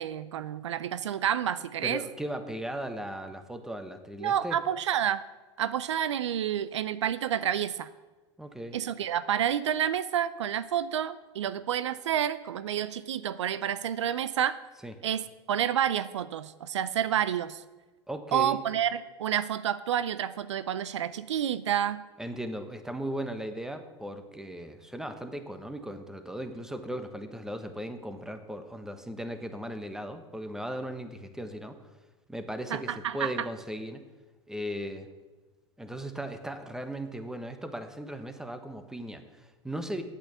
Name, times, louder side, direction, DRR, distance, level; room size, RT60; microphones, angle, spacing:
voice 1, 0.0-2.0 4.2-5.2 5.6-7.9 8.7-14.6 15.0-17.6 18.3-22.0 32.7-33.3, right 10 dB, 80° right, 15 dB, 0.5 m, -29 dB
voice 2, 1.8-4.6 8.4-8.8 14.8-14.9 18.1-18.6 22.2-31.8 32.3-34.0 34.5-35.1 35.8-40.0, right 1 dB, 5° right, 8 dB, 1.3 m, -37 dB
8.8 x 8.5 x 8.3 m, 1.2 s
hypercardioid pair, 90°, 15 cm